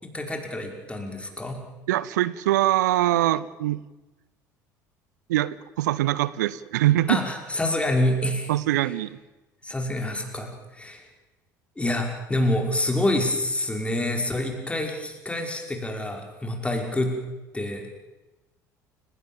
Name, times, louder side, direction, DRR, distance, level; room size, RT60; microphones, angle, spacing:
voice 1, 0.0-1.6 7.1-8.5 9.6-11.0 11.8-17.2 17.5-18.0, left 1 dB, 10° left, 2 dB, 5.6 m, -27 dB
voice 2, 1.9-3.8 5.3-7.2 8.5-9.2, right 14 dB, 70° right, 19 dB, 0.8 m, -23 dB
30.0 x 17.5 x 7.3 m, 1.1 s
figure-of-eight pair, 60°, 10 cm